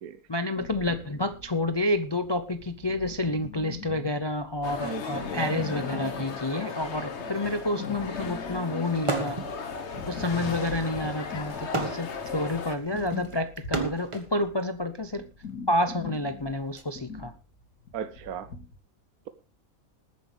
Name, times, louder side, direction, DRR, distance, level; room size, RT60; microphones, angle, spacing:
voice 1, 0.3-9.4 10.1-15.3 15.7-17.3, left 1 dB, 30° left, 10 dB, 0.4 m, -29 dB
sound 1, 0.6-18.8, left 5 dB, 80° left, 2.5 m, -42 dB
sound 2, 4.6-12.8, left 5 dB, 50° left, 1.4 m, -36 dB
voice 2, 4.8-5.4 17.9-18.5, right 9 dB, 80° right, 10 dB, 1.3 m, -37 dB
sound 3, 9.0-9.5 9.9-14.3 15.2-16.8, right 3 dB, 20° right, 1.5 m, -34 dB
20.5 x 9.5 x 3.3 m, 0.30 s
omnidirectional pair, 1.5 m